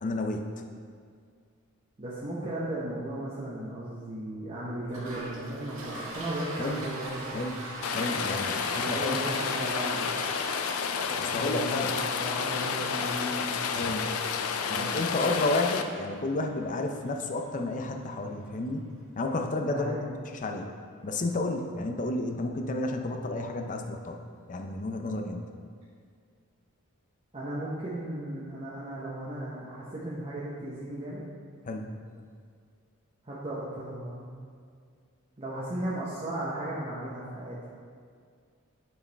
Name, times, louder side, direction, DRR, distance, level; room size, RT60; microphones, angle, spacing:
voice 1, 0.0-0.5 6.6-6.8 7.3-7.6 7.9-9.2 11.2-11.9 13.7-14.0 14.7-18.8 19.2-20.0 20.3-20.7 21.0-24.2 24.5-25.5 31.7-31.9, left 2 dB, 40° left, 4 dB, 0.5 m, -31 dB
voice 2, 2.0-7.5 8.7-10.2 10.9-13.5 14.7-15.0 19.6-20.0 27.3-31.3 33.2-34.3 35.4-37.6, right 1 dB, 30° right, -9 dB, 1.0 m, -36 dB
Toilet flush, 4.8-18.2, right 1 dB, 70° right, 1.8 m, -43 dB
Rain, 7.8-15.8, left 6 dB, 90° left, 0.4 m, -30 dB
8.3 x 4.7 x 3.4 m, 2.1 s
head